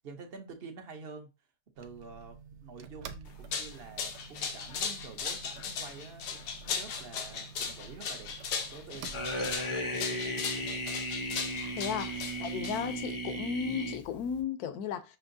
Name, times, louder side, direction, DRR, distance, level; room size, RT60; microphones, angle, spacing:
voice 1, 0.0-1.3 1.8-8.3 8.7-11.0, right 5 dB, 50° right, 0.8 m, -48 dB
sound 1, 1.8-9.6, right 6 dB, 85° right, 1.1 m, -49 dB
sound 2, 3.3-13.1, left 6 dB, 90° left, 1.4 m, -37 dB
sound 3, 9.1-14.4, equal, 40° left, 0.4 m, -35 dB
voice 2, 11.7-15.2, left 8 dB, 75° left, 1.1 m, -35 dB
6.0 x 2.8 x 2.6 m
omnidirectional pair, 1.7 m